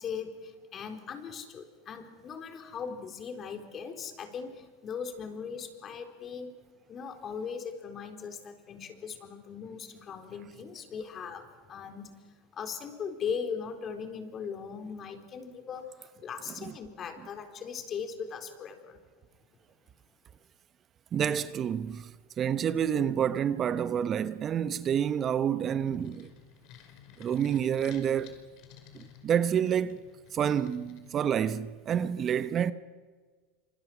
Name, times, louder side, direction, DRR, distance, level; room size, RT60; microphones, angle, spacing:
voice 1, 0.0-6.5 6.9-12.1 12.5-19.0, left 6 dB, 35° left, 4.2 m, -39 dB
voice 2, 21.1-22.1 22.4-26.3 27.2-28.4 28.9-30.0 30.3-32.7, right 8 dB, 35° right, 1.0 m, -28 dB
sound 1, 25.4-31.7, left 7 dB, 60° left, 5.4 m, -54 dB
29.5 x 26.0 x 6.2 m
hypercardioid pair, 95°, 0 cm